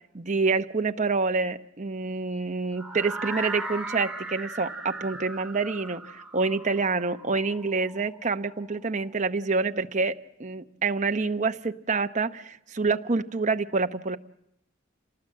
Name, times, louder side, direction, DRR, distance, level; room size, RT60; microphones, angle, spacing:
voice 1, 0.1-14.2, right 4 dB, 40° right, 8 dB, 0.9 m, -27 dB
sound 1, 2.8-8.7, right 2 dB, 5° right, 2.4 m, -37 dB
29.0 x 19.0 x 7.7 m, 0.87 s
head